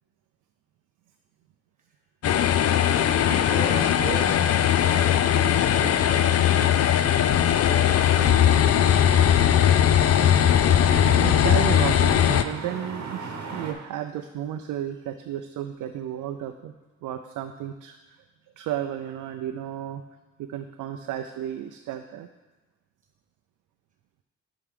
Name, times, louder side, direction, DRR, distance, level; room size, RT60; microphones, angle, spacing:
sound 1, 2.2-12.4, left 10 dB, 50° left, 0.4 m, -19 dB
voice 1, 2.6-3.3 10.5-10.6 11.0-16.7 17.0-18.2 18.6-20.0 20.4-22.3, right 11 dB, 85° right, 6 dB, 0.5 m, -33 dB
voice 2, 3.2-8.7 9.0-9.3, right 1 dB, 25° right, 1 dB, 1.4 m, -38 dB
sound 2, 7.9-13.7, right 4 dB, 60° right, 1.0 m, -37 dB
10.0 x 4.6 x 3.7 m, 1.2 s
cardioid pair, 95°, 31 cm